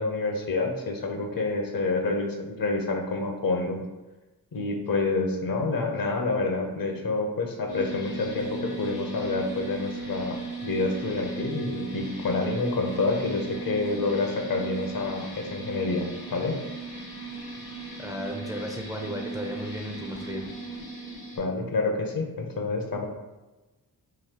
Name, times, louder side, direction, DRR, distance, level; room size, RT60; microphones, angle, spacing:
voice 1, 0.0-3.8 4.5-10.4 10.6-16.6 21.4-23.1, left 3 dB, 60° left, 2 dB, 0.7 m, -28 dB
sound 1, 7.7-21.4, right 3 dB, 85° left, 1.3 m, -37 dB
voice 2, 18.0-20.4, equal, 10° right, 1 dB, 0.4 m, -35 dB
4.0 x 2.7 x 2.9 m, 1.1 s
cardioid pair, 75°, 39 cm